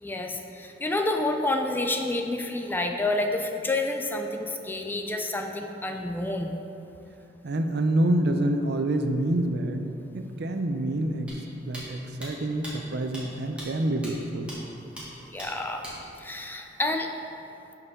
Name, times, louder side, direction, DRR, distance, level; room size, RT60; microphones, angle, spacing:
voice 1, 0.0-6.5 15.3-15.9 16.2-17.1, left 2 dB, 10° left, 3 dB, 0.4 m, -29 dB
voice 2, 7.4-9.9 10.1-11.3 11.7-14.5, right 1 dB, 60° right, 6 dB, 0.6 m, -27 dB
sound 1, 11.3-11.4 11.7-11.8 12.2-12.3 12.6-12.7 13.1-13.2 13.6-13.7 14.0-14.1 14.5-14.6 15.0-15.1 15.4-15.5 15.8-15.9, right 1 dB, 5° right, 1.8 m, -39 dB
12.0 x 4.8 x 3.7 m, 2.9 s
head